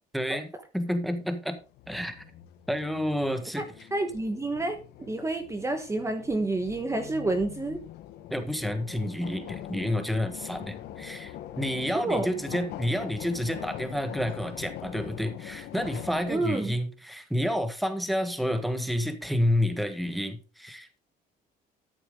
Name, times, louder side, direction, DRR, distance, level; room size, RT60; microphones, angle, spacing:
voice 1, 0.1-1.6 1.9-2.2 2.7-3.6 8.3-21.0, equal, ahead, 1.4 m, -30 dB
sound 1, 1.6-16.4, left 12 dB, 80° left, 1.1 m, -43 dB
voice 2, 3.6-7.8 11.9-12.3 16.3-16.8, right 2 dB, 15° right, 1.2 m, -29 dB
12.5 x 7.0 x 3.7 m
cardioid pair, 110°, 17 cm